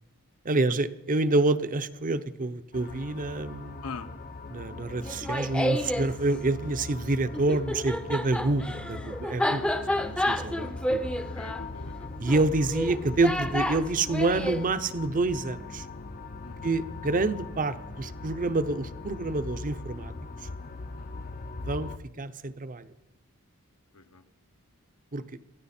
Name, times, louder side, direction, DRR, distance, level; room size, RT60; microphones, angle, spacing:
voice 1, 0.4-3.8 4.5-9.6 10.0-11.1 12.2-15.9 16.6-20.1 21.6-21.9 22.2-22.9 25.1-25.2, right 2 dB, 35° right, 12 dB, 0.7 m, -27 dB
sound 1, 2.7-22.0, left 3 dB, 40° left, 0.7 m, -40 dB
Laughter, 5.0-6.1 7.3-14.6, left 1 dB, 5° left, 0.6 m, -30 dB
voice 2, 11.3-12.3 16.4-16.8 20.9-21.3 23.9-24.2, left 4 dB, 75° left, 8 dB, 1.2 m, -43 dB
22.0 x 14.5 x 4.3 m, 1.1 s
head